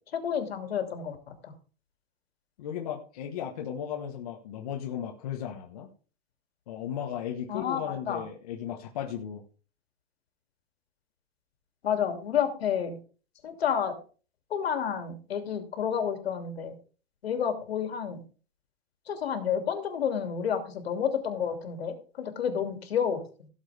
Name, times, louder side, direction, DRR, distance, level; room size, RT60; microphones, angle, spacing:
voice 1, 0.1-1.2 1.4-1.5 7.5-7.8 8.1-8.2 11.8-13.0 13.4-14.0 14.5-16.8 17.2-18.2 19.1-23.5, left 8 dB, 70° left, 6 dB, 2.7 m, -30 dB
voice 2, 2.6-5.9 6.7-9.4, left 9 dB, 35° left, 0 dB, 1.4 m, -36 dB
16.5 x 7.4 x 3.4 m, 0.38 s
hypercardioid pair, 180°, 32 cm